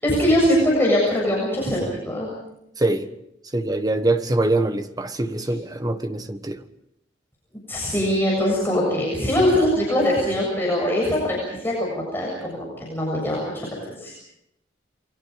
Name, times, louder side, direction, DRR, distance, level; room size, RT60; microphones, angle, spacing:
voice 1, 0.0-2.3 7.7-14.1, left 1 dB, 10° left, 7.3 m, -22 dB
voice 2, 2.8-3.1 3.5-6.6, right 2 dB, 20° right, 1.4 m, -23 dB
29.0 x 23.5 x 5.2 m
head